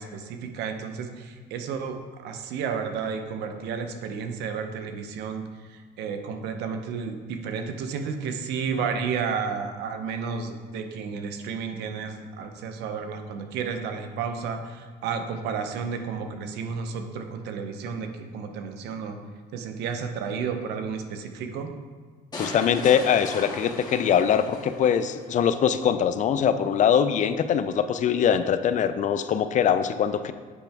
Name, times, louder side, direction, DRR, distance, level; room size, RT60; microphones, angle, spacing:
voice 1, 0.0-5.5 5.7-19.2 19.5-21.7, right 6 dB, 80° right, 6 dB, 0.8 m, -32 dB
sound 1, 22.3-25.3, left 2 dB, 25° left, 2.0 m, -38 dB
voice 2, 22.4-30.3, left 8 dB, 45° left, 11 dB, 0.4 m, -22 dB
8.3 x 5.6 x 3.5 m, 1.5 s
cardioid pair, 110°, 17 cm